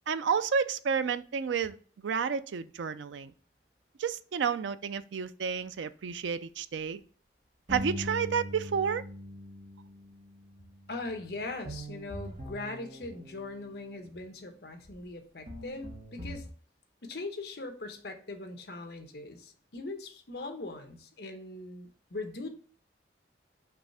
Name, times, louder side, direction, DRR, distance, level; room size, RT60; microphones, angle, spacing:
voice 1, 0.1-3.3 4.0-7.0 7.7-9.0, right 6 dB, 90° right, 0.4 m, -31 dB
sound 1, 7.7-13.6 14.8-15.0 15.5-16.5, equal, 45° right, 1.3 m, -42 dB
voice 2, 10.9-16.5 17.0-22.5, left 2 dB, 65° left, 1.0 m, -40 dB
6.0 x 3.2 x 5.5 m
head